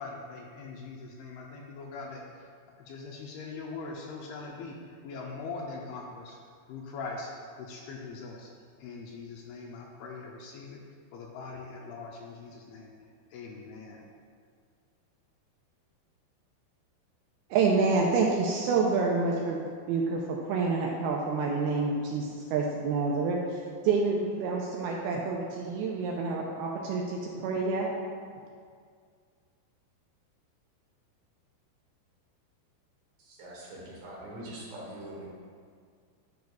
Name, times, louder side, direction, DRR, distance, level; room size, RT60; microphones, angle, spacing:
voice 1, 0.0-2.5 2.8-6.4 6.7-7.3 7.6-8.5 8.8-10.8 11.1-12.9 13.3-14.0, left 4 dB, 80° left, -1 dB, 2.4 m, -42 dB
voice 2, 17.5-27.9, right 4 dB, 85° right, -1 dB, 2.3 m, -28 dB
voice 3, 33.2-35.3, right 1 dB, 65° right, -4 dB, 2.5 m, -43 dB
11.5 x 6.2 x 2.3 m, 2.1 s
omnidirectional pair, 4.9 m